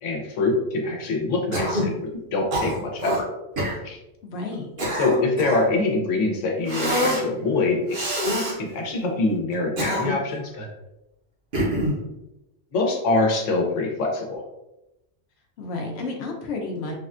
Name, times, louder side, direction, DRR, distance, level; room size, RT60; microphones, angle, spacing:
voice 1, 0.0-3.3 3.8-4.0 4.9-8.0 8.6-10.7 12.7-14.4, left 3 dB, 85° left, 1 dB, 1.0 m, -24 dB
Cough, 1.5-1.9 2.5-3.2 3.6-3.8 4.5-5.7 6.7-7.3 7.9-8.6 9.5-10.3 11.5-12.0, equal, 50° right, 0.9 m, -25 dB
voice 2, 4.2-4.7 15.6-17.0, left 3 dB, 65° left, 2 dB, 0.8 m, -31 dB
3.4 x 2.2 x 2.4 m, 0.92 s
omnidirectional pair, 1.2 m